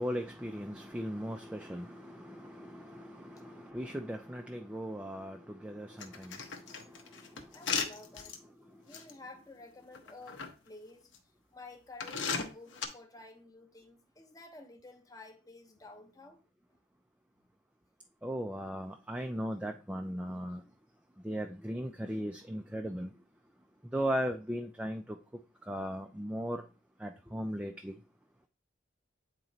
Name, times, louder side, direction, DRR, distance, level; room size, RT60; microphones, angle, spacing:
voice 1, 0.0-6.4 18.2-20.6 21.2-23.1 23.9-25.0 25.7-26.6 27.0-27.9, equal, 5° right, 0.3 m, -37 dB
sound 1, 6.0-8.4 8.9-9.1 9.9-10.5 11.1-11.2 12.0-12.9, left 6 dB, 80° left, 0.9 m, -36 dB
voice 2, 7.5-8.4 8.8-11.1 11.5-16.4 20.6-20.7, left 2 dB, 20° left, 0.8 m, -52 dB
8.8 x 3.0 x 3.9 m
head